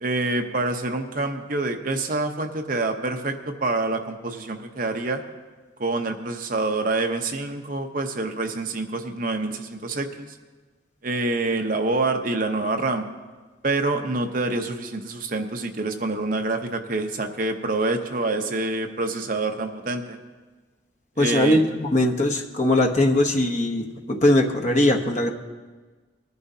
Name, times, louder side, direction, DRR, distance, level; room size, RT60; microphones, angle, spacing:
voice 1, 0.0-5.2 5.8-10.4 11.0-13.1 13.6-20.2 21.2-21.6, right 2 dB, 45° right, 5 dB, 0.8 m, -26 dB
voice 2, 21.2-25.3, left 1 dB, 35° left, 3 dB, 1.0 m, -20 dB
20.0 x 11.0 x 2.8 m, 1.3 s
head